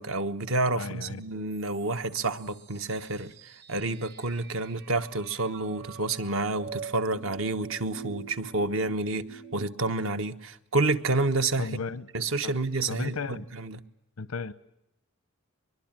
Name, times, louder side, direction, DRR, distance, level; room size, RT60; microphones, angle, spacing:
voice 1, 0.0-11.7 12.1-13.8, right 2 dB, 65° right, 1.2 m, -29 dB
voice 2, 0.7-1.2 11.6-12.1 12.4-12.6 12.9-13.5 14.2-14.5, left 4 dB, 90° left, 0.9 m, -35 dB
sound 1, 1.5-9.6, right 6 dB, 50° right, 1.4 m, -45 dB
23.5 x 22.0 x 9.0 m
head